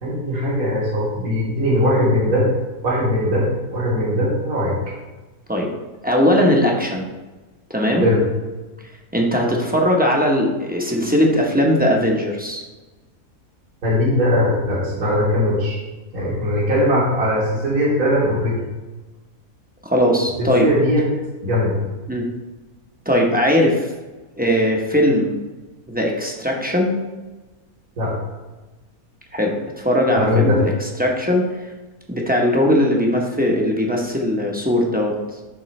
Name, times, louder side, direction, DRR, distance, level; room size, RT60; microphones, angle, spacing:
voice 1, 0.0-2.5 2.8-4.8 8.0-8.2 13.8-15.8 16.1-18.6 20.4-21.1 21.4-21.8 28.0-28.2 30.1-30.6, left 1 dB, 70° right, -6 dB, 2.1 m, -20 dB
voice 2, 6.0-7.1 7.7-8.1 9.1-12.6 19.8-20.7 22.1-22.3 23.1-23.9 24.4-25.4 25.9-26.9 29.3-31.5 32.1-35.2, equal, 10° right, -1 dB, 0.7 m, -19 dB
11.0 x 3.8 x 3.2 m, 1.2 s
omnidirectional pair, 1.6 m